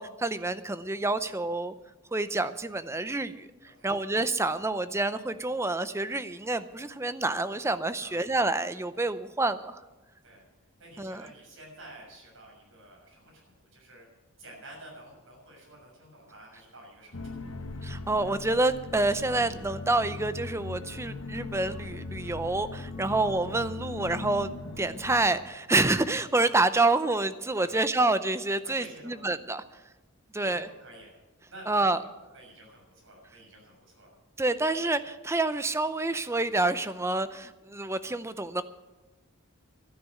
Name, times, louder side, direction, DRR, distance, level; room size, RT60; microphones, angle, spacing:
voice 1, 0.0-1.7 2.1-3.5 3.8-9.8 11.0-11.3 17.8-29.6 30.3-30.7 31.7-32.0 34.4-38.6, right 2 dB, 10° right, 12 dB, 0.5 m, -28 dB
voice 2, 3.6-4.0 8.0-8.2 10.2-10.4 10.8-14.0 14.4-17.7 23.0-23.2 27.6-27.8 28.6-29.2 30.4-31.2 31.5-34.2, right 1 dB, 60° right, -1 dB, 6.7 m, -50 dB
sound 1, 17.1-25.3, left 3 dB, 65° left, 1.2 m, -39 dB
12.0 x 10.0 x 9.3 m, 1.1 s
head